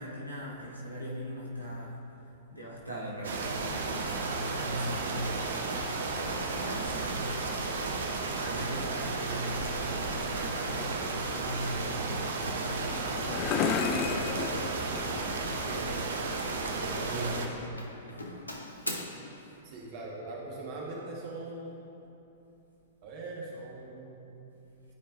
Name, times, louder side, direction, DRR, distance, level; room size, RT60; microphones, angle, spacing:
voice 1, 0.0-5.8 6.2-13.1 13.9-14.6 15.6-18.4 19.3-19.5, equal, 85° right, -5 dB, 1.5 m, -40 dB
sound 1, 3.2-17.5, right 3 dB, 60° right, 0.7 m, -33 dB
sound 2, 12.5-16.0, left 6 dB, 30° left, 0.4 m, -33 dB
Doorbell, 16.2-16.6 16.9-17.4 17.8-19.0, left 1 dB, 85° left, 0.8 m, -42 dB
voice 2, 19.6-21.8 23.0-24.4, right 2 dB, 40° right, -3 dB, 1.2 m, -41 dB
13.0 x 4.7 x 2.5 m, 2.8 s
figure-of-eight pair, 105°, 0 cm